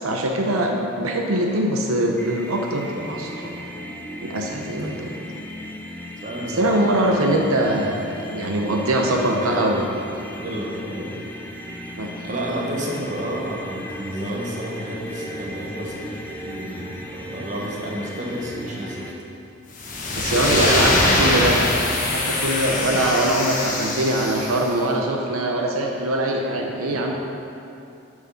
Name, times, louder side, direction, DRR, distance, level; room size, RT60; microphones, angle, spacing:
voice 1, 0.0-3.5 4.2-5.2 6.4-9.9 12.0-12.1 20.2-21.6 22.1-27.1, right 1 dB, 85° right, 1 dB, 0.8 m, -22 dB
sound 1, 2.2-19.1, equal, 10° left, 0.6 m, -36 dB
voice 2, 6.2-7.3 9.2-9.7 10.0-11.2 12.2-19.1 20.3-21.2 22.7-23.0 26.8-27.1, right 1 dB, 35° right, -3 dB, 1.2 m, -31 dB
sound 2, 19.7-24.7, left 2 dB, 40° left, 1.0 m, -22 dB
7.4 x 6.2 x 5.7 m, 2.7 s
head